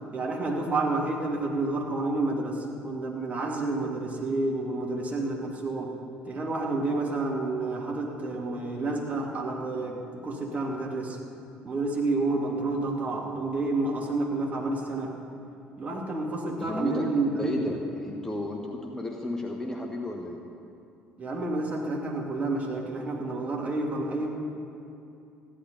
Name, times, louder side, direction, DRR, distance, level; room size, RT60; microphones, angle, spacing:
voice 1, 0.1-5.9 6.2-11.2 11.6-15.1 15.8-17.8 21.2-24.3, right 2 dB, 30° right, -1 dB, 2.7 m, -29 dB
voice 2, 16.6-17.1 17.4-20.4, left 1 dB, 10° left, 1 dB, 1.2 m, -33 dB
15.0 x 11.5 x 5.6 m, 2.7 s
figure-of-eight pair, 55°, 5 cm